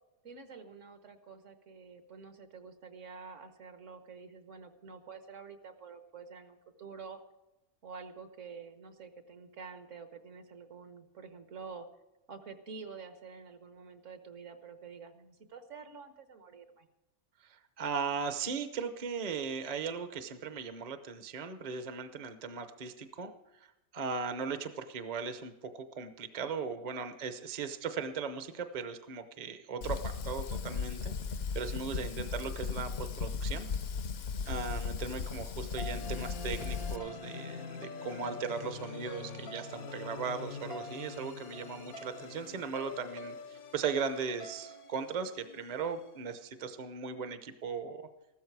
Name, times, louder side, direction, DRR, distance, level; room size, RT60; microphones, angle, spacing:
voice 1, 0.2-7.2 7.8-11.9 12.3-16.9 32.1-32.8, right 5 dB, 60° right, 8 dB, 1.5 m, -48 dB
voice 2, 17.4-23.3 23.9-31.1 31.5-33.7 34.5-48.1, right 5 dB, 35° right, 9 dB, 0.8 m, -38 dB
Fire, 29.8-37.0, left 5 dB, 55° left, 0.8 m, -36 dB
sound 1, 35.8-46.0, left 4 dB, 85° left, 1.4 m, -45 dB
14.5 x 13.0 x 4.7 m, 0.98 s
omnidirectional pair, 1.5 m